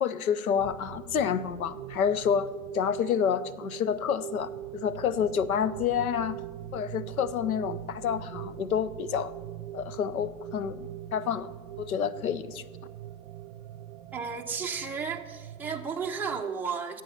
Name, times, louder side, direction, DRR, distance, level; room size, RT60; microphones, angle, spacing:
voice 1, 0.0-2.5 2.7-6.4 6.7-9.3 9.7-11.5 11.8-12.6, left 8 dB, 85° left, 16 dB, 0.9 m, -29 dB
sound 1, 0.6-16.4, right 12 dB, 50° right, 0.7 m, -42 dB
voice 2, 14.1-17.0, right 6 dB, 5° right, 0 dB, 0.6 m, -33 dB
11.0 x 7.9 x 8.0 m, 1.4 s
hypercardioid pair, 130°, 42 cm